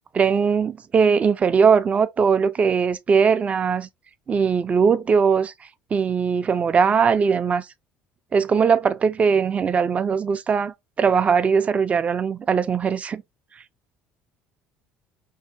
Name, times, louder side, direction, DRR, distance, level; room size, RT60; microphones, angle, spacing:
voice 1, 0.1-3.9 4.3-5.5 5.9-7.6 8.3-13.2, right 6 dB, 30° right, 0.3 m, -20 dB
2.7 x 2.7 x 2.5 m
supercardioid pair, 95°, 5 cm